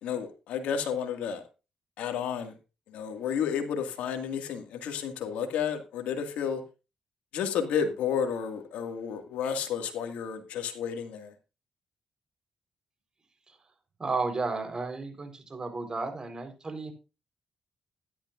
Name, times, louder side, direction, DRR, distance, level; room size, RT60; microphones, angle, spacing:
voice 1, 0.0-1.4 2.0-2.5 2.9-6.6 7.3-11.3, left 7 dB, 90° left, 2.0 m, -31 dB
voice 2, 14.0-16.9, right 3 dB, 35° right, 4.1 m, -33 dB
13.5 x 11.0 x 2.5 m
cardioid pair, 60°, 2 cm